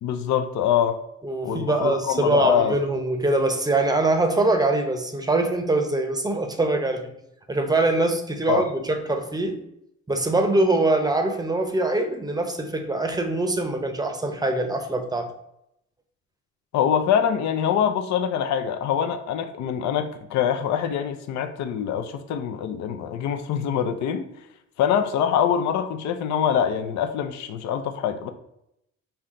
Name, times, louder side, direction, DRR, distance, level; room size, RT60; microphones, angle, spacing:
voice 1, 0.0-1.0 1.4-2.8 8.5-8.6 16.7-24.3 24.8-28.3, left 8 dB, 70° left, 7 dB, 0.5 m, -24 dB
voice 2, 1.2-7.1 7.5-9.6 10.1-15.3, right 2 dB, 15° right, 6 dB, 0.7 m, -23 dB
5.5 x 2.2 x 3.7 m, 0.80 s
cardioid pair, 90°, 30 cm